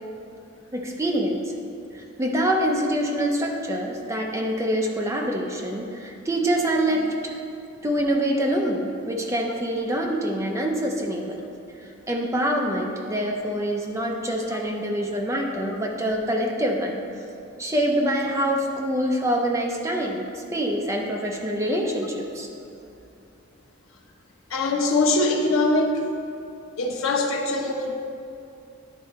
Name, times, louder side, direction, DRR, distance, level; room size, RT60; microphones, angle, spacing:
voice 1, 0.7-1.4 1.9-7.3 7.8-11.5 12.1-17.0 17.6-22.5, right 1 dB, 15° right, 0 dB, 0.6 m, -25 dB
voice 2, 24.5-26.0 26.8-27.9, left 2 dB, 90° left, 1 dB, 0.8 m, -22 dB
10.5 x 3.8 x 4.2 m, 2.8 s
head